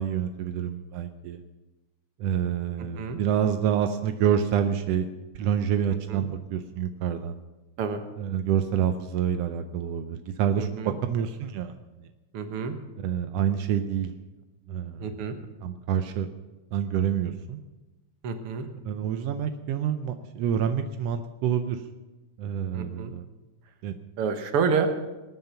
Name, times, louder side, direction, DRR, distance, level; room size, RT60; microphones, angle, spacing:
voice 1, 0.0-1.4 2.2-5.1 5.4-7.4 8.2-11.7 12.0-12.1 13.0-14.1 14.7-15.1 15.6-16.3 16.7-17.6 18.8-21.8 22.4-23.2 23.8-24.0, right 8 dB, 80° right, 8 dB, 1.4 m, -27 dB
voice 2, 10.6-10.9 12.3-12.8 15.0-15.4 18.2-18.7 22.7-23.1 24.2-25.0, right 5 dB, 55° right, 7 dB, 1.8 m, -28 dB
20.5 x 9.6 x 5.8 m, 1.1 s
omnidirectional pair, 3.6 m